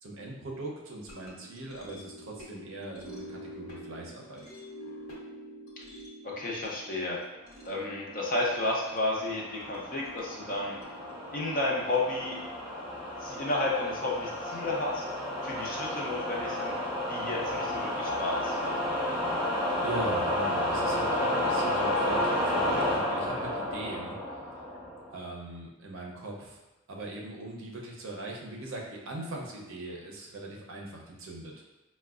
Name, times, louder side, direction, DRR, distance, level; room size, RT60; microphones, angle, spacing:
voice 1, 0.0-4.4 19.8-24.2 25.1-26.6 26.9-31.5, right 2 dB, 60° right, -2 dB, 0.6 m, -40 dB
sound 1, 1.0-13.4, equal, 75° left, 0.8 m, -48 dB
voice 2, 6.2-7.2 7.6-10.8 11.3-12.4 13.2-15.0 15.4-16.8 17.1-18.8 29.9-30.0, left 2 dB, 40° left, -3 dB, 0.6 m, -32 dB
sound 2, 8.7-25.1, left 1 dB, 5° right, 0.8 m, -31 dB
4.4 x 2.1 x 2.4 m, 1.0 s
head